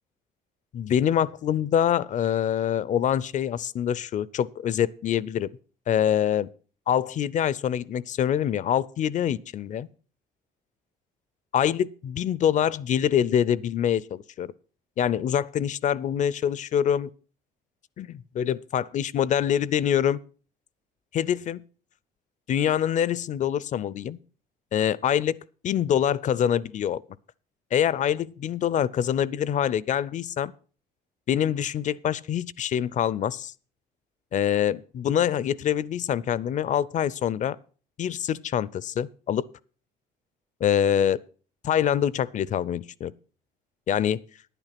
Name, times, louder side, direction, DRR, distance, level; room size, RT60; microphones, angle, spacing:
voice 1, 0.7-5.5 5.9-6.5 6.9-9.9 11.5-14.5 15.0-17.1 18.0-20.2 21.1-21.6 22.5-24.2 24.7-25.4 25.6-27.0 27.7-30.5 31.3-33.5 34.3-37.6 38.0-39.4 40.6-41.2 41.6-43.1 43.9-44.2, left 9 dB, 45° left, 0.5 m, -25 dB
10.5 x 9.1 x 5.8 m
cardioid pair, 110°, 17 cm